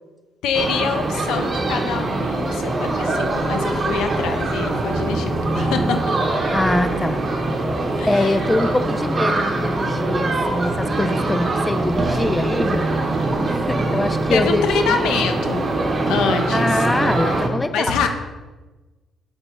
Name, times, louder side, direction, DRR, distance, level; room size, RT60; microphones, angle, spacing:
voice 1, 0.4-6.0 8.0-8.4 14.3-15.7 16.1-16.9 17.7-18.1, left 6 dB, 90° left, 6 dB, 0.7 m, -25 dB
sound 1, 0.5-17.5, right 2 dB, 35° right, 0.9 m, -23 dB
voice 2, 6.5-7.2 8.1-12.9 13.4-15.0 16.5-18.0, left 1 dB, 15° left, 10 dB, 0.3 m, -23 dB
8.1 x 3.8 x 3.7 m, 1.2 s
cardioid pair, 90°, 0 cm